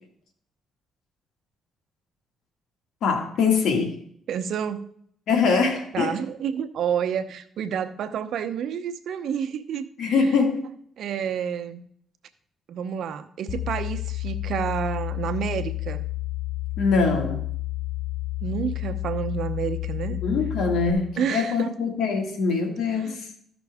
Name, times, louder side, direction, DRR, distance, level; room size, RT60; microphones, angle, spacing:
voice 1, 3.0-4.0 5.3-6.2 10.0-10.6 16.8-17.4 20.1-23.3, left 4 dB, 75° left, 4 dB, 1.8 m, -23 dB
voice 2, 4.3-4.9 5.9-9.9 11.0-11.8 12.7-16.0 18.4-20.2 21.2-21.7 23.0-23.2, right 8 dB, 70° right, 10 dB, 0.8 m, -29 dB
sound 1, 13.5-20.9, left 18 dB, 45° left, 0.8 m, -30 dB
14.0 x 6.0 x 3.6 m, 0.64 s
cardioid pair, 95°, 0 cm